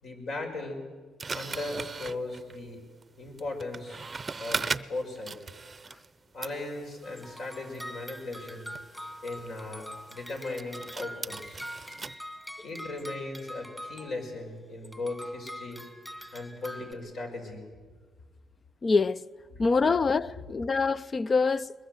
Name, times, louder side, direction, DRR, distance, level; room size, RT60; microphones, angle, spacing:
voice 1, 0.0-0.8 1.3-2.8 3.2-4.0 4.4-5.4 6.3-8.7 9.2-11.6 12.6-15.9 16.3-17.7 20.3-20.5, left 2 dB, 60° left, 5.4 m, -37 dB
sound 1, 1.2-6.1 6.4-12.2, right 4 dB, 30° right, 0.7 m, -39 dB
sound 2, 7.0-14.4 14.8-16.9, equal, 10° left, 2.4 m, -44 dB
voice 2, 18.8-19.2 19.6-21.7, left 4 dB, 35° left, 0.6 m, -25 dB
21.5 x 21.5 x 7.8 m
cardioid pair, 90°, 0 cm